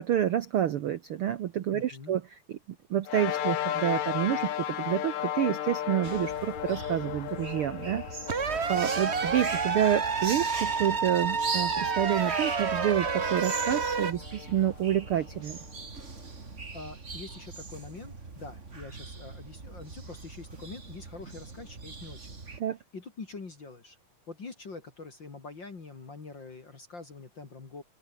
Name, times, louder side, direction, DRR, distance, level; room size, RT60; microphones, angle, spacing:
voice 1, 0.0-2.2 2.5-2.6 2.9-8.0 8.7-15.6 22.6-22.8, right 11 dB, 75° right, 1.2 m, -28 dB
voice 2, 1.7-2.2 16.7-22.4 22.9-24.0 24.3-27.8, left 4 dB, 35° left, 3.2 m, -44 dB
sound 1, 3.1-15.8, left 11 dB, 65° left, 2.6 m, -36 dB
sound 2, 6.0-22.6, right 4 dB, 25° right, 2.3 m, -41 dB
sound 3, 8.3-14.1, right 5 dB, 50° right, 0.8 m, -29 dB
open air
omnidirectional pair, 3.7 m